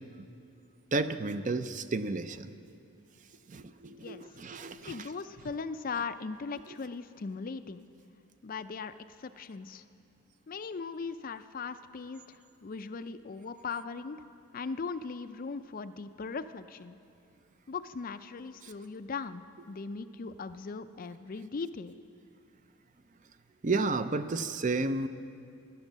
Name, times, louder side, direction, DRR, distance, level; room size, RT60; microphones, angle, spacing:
voice 1, 0.9-2.5 3.5-5.0 18.6-18.7 23.6-25.1, right 3 dB, 35° right, 11 dB, 0.5 m, -32 dB
voice 2, 4.8-7.9 8.4-9.8 10.5-14.2 14.5-17.0 17.7-22.0, left 4 dB, 40° left, 11 dB, 0.4 m, -39 dB
16.0 x 11.5 x 7.3 m, 2.5 s
head